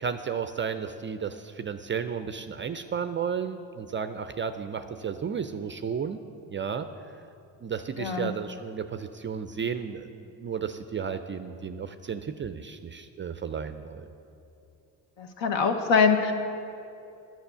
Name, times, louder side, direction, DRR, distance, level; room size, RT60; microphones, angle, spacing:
voice 1, 0.0-6.2 6.5-7.2 7.6-14.1, right 6 dB, 25° right, 10 dB, 0.4 m, -33 dB
voice 2, 8.0-8.3 15.2-16.3, left 5 dB, 65° left, 5 dB, 1.1 m, -23 dB
10.5 x 6.1 x 6.7 m, 2.7 s
hypercardioid pair, 60°, 48 cm